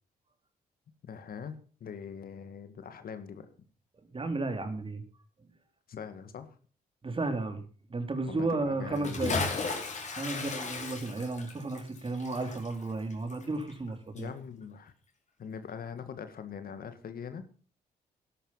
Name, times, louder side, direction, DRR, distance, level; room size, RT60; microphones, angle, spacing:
voice 1, 1.0-3.5 5.9-6.6 8.3-9.7 10.3-10.5 14.1-14.9 15.4-17.5, left 7 dB, 60° left, 10 dB, 2.0 m, -42 dB
voice 2, 4.1-5.0 7.0-7.6 7.9-9.4 10.2-14.3, right 3 dB, 30° right, 7 dB, 3.4 m, -33 dB
Bathtub (filling or washing) / Splash splatter, 8.9-13.9 14.2-14.3, left 3 dB, 45° left, 4.7 m, -35 dB
12.5 x 12.0 x 5.7 m, 0.39 s
supercardioid pair, 65°, 17 cm